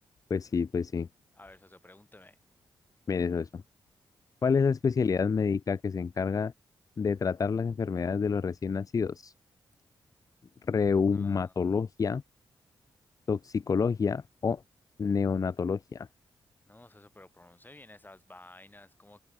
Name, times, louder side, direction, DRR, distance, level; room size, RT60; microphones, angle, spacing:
voice 1, 0.3-1.1 3.1-3.6 4.4-6.5 7.0-9.3 10.7-12.2 13.3-14.6 15.0-16.1, left 5 dB, 40° left, 0.4 m, -28 dB
voice 2, 1.3-2.4 11.1-11.8 16.7-19.2, left 2 dB, 20° left, 6.4 m, -54 dB
supercardioid pair, 45°, 9 cm